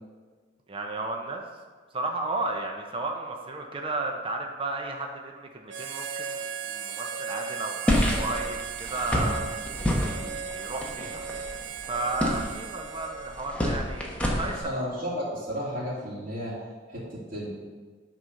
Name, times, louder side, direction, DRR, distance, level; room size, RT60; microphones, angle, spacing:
voice 1, 0.7-1.5 1.9-9.5 10.0-11.2 11.8-14.6, right 2 dB, 30° right, 2 dB, 0.8 m, -33 dB
Harmonica, 5.7-13.7, right 6 dB, 80° right, 0.6 m, -36 dB
sound 1, 7.9-14.6, left 1 dB, 5° left, 1.3 m, -29 dB
voice 2, 14.4-16.5 16.9-17.5, equal, 50° right, -10 dB, 2.6 m, -33 dB
9.2 x 4.2 x 6.5 m, 1.5 s
head